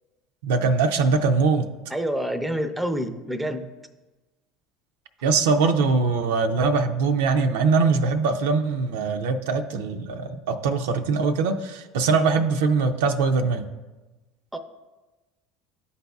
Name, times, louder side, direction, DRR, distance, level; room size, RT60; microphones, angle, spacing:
voice 1, 0.4-1.6 5.2-13.7, right 4 dB, 85° right, 6 dB, 0.5 m, -22 dB
voice 2, 1.9-3.7 14.5-14.6, equal, 5° right, 8 dB, 0.6 m, -27 dB
11.5 x 4.1 x 2.3 m, 1.1 s
supercardioid pair, 90°, 0 cm